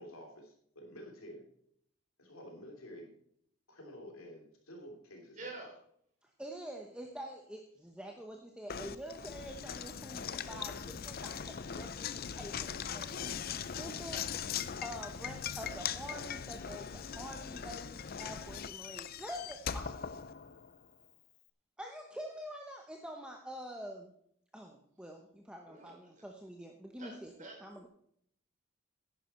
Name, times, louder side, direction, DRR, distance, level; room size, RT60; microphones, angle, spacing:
voice 1, 0.0-1.4 2.2-3.1 3.7-5.5, equal, 80° left, 2 dB, 3.1 m, -50 dB
voice 2, 5.4-5.7 25.7-25.9 27.0-27.1 27.4-27.6, right 3 dB, 35° right, 1 dB, 3.7 m, -46 dB
voice 3, 6.2-14.5 14.8-20.0 21.8-24.1 24.5-27.9, equal, 5° right, 1 dB, 0.9 m, -46 dB
Knock, 8.7-20.8, left 7 dB, 45° left, 0.5 m, -40 dB
11.0 x 10.0 x 4.3 m, 0.68 s
head